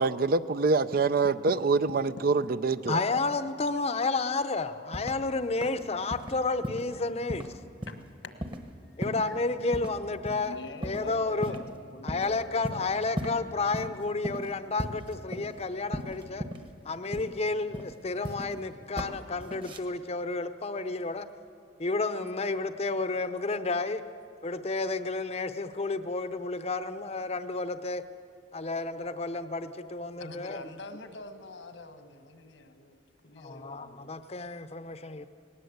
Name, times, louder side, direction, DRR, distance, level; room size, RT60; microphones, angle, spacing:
voice 1, 0.0-3.0, right 4 dB, 50° right, 14 dB, 0.5 m, -25 dB
voice 2, 1.2-1.6 7.8-9.4 10.4-13.2 30.2-34.0, left 2 dB, 80° left, 8 dB, 1.5 m, -46 dB
voice 3, 2.9-7.5 9.0-10.5 10.8-11.5 12.0-16.4 16.8-21.3 21.8-24.0 24.4-28.0 28.5-30.6 33.4-35.3, left 3 dB, 35° left, 11 dB, 0.7 m, -31 dB
sound 1, 4.9-5.3 5.6-5.8 6.1-6.3 6.6-7.0 7.3-7.5 7.8-8.1 8.4-8.6 9.0-9.4 9.7-10.0 10.3-10.4 10.8-11.1 11.4-11.8 12.1-12.3 12.6-13.4 13.7-13.9 14.2-14.5 14.8-15.6 15.9-16.7 17.1-17.4 17.7-18.6 19.0-19.1 19.4-19.8, equal, 25° right, 1.2 m, -36 dB
18.5 x 18.5 x 8.0 m, 2.3 s
head